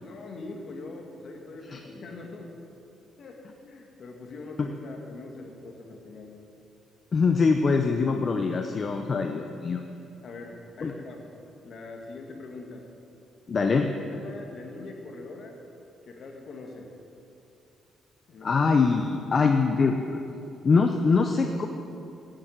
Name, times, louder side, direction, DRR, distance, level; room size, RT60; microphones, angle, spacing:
voice 1, 0.0-2.5 3.2-6.4 10.2-11.2 11.6-12.8 14.1-15.6 16.0-16.9 18.3-18.5, left 3 dB, 60° left, 2 dB, 2.0 m, -42 dB
voice 2, 7.1-9.8 10.8-10.9 13.5-13.9 18.4-20.2 20.6-21.7, left 4 dB, 40° left, 5 dB, 0.7 m, -23 dB
9.1 x 8.7 x 8.8 m, 2.8 s
cardioid pair, 90°, 0 cm